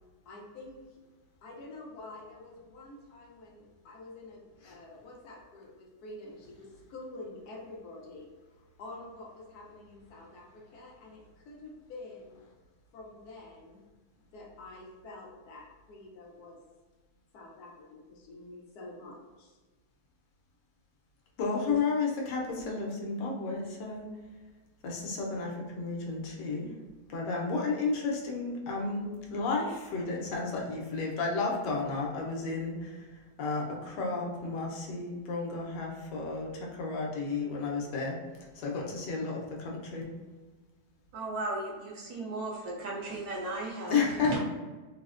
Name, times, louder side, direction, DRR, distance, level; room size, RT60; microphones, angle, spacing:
voice 1, 0.3-1.0 1.4-12.4 12.9-13.8 14.3-16.6 17.3-19.6, left 2 dB, 70° left, -2 dB, 1.1 m, -48 dB
voice 2, 21.4-24.1 24.8-26.7 27.1-40.1 43.9-44.4, left 4 dB, 90° left, -1 dB, 1.3 m, -32 dB
voice 3, 41.1-44.4, right 2 dB, 70° right, -2 dB, 1.0 m, -36 dB
3.9 x 2.0 x 2.4 m, 1.3 s
omnidirectional pair, 1.8 m